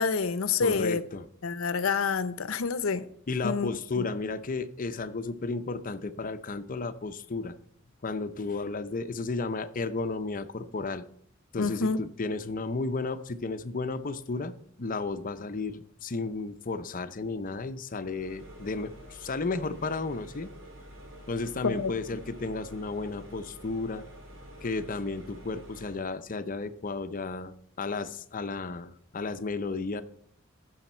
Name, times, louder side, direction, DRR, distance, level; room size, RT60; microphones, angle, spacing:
voice 1, 0.0-1.0 1.4-3.0 3.4-4.3 11.6-12.0 21.6-21.9, left 5 dB, 85° left, 14 dB, 0.7 m, -28 dB
voice 2, 0.6-1.3 3.3-7.6 8.0-11.0 11.5-20.5 21.3-24.0 24.6-30.0, left 3 dB, 40° left, 11 dB, 0.7 m, -33 dB
sound 1, 18.0-26.1, equal, 65° right, 2.8 m, -48 dB
15.0 x 6.4 x 4.4 m, 0.65 s
head